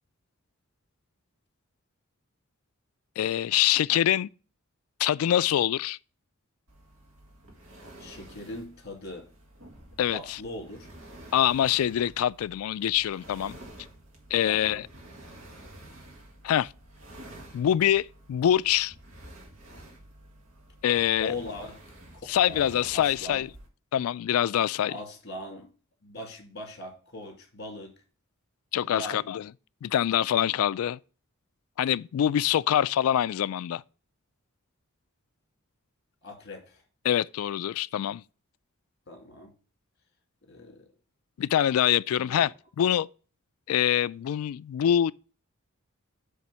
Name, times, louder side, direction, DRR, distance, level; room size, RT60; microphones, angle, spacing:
voice 1, 3.2-4.3 5.0-6.0 10.0-10.4 11.3-13.6 14.3-14.9 16.4-16.7 17.5-18.9 20.8-21.3 22.3-23.5 23.9-24.9 28.7-29.5 29.8-31.0 31.8-33.8 37.0-38.2 41.4-43.1 43.7-45.1, left 10 dB, 80° left, 0.3 m, -25 dB
sound 1, 6.7-23.7, right 1 dB, 75° right, 2.1 m, -50 dB
voice 2, 8.0-9.3 10.1-10.9 14.4-14.8 21.2-21.8 22.1-22.7 22.9-23.4 24.9-25.7 26.0-27.9 28.8-29.3 36.2-36.8 39.1-39.5 40.5-40.9 42.2-42.4, left 1 dB, 50° left, 2.1 m, -40 dB
7.3 x 3.5 x 6.0 m
head